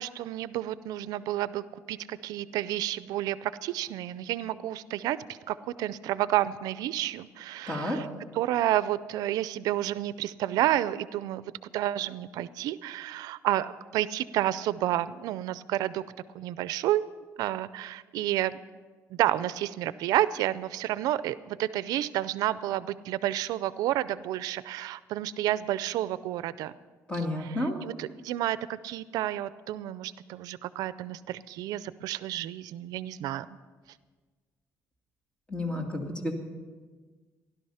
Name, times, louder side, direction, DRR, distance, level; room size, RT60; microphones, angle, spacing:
voice 1, 0.0-8.1 8.3-16.0 16.3-17.0 17.4-18.5 19.1-26.7 27.1-27.6 27.8-33.5, right 13 dB, 85° right, 16 dB, 0.4 m, -30 dB
voice 2, 7.7-8.0 27.1-27.8 35.5-36.3, left 1 dB, 15° left, 2 dB, 2.3 m, -31 dB
16.5 x 11.5 x 5.6 m, 1.4 s
cardioid pair, 125°, 6 cm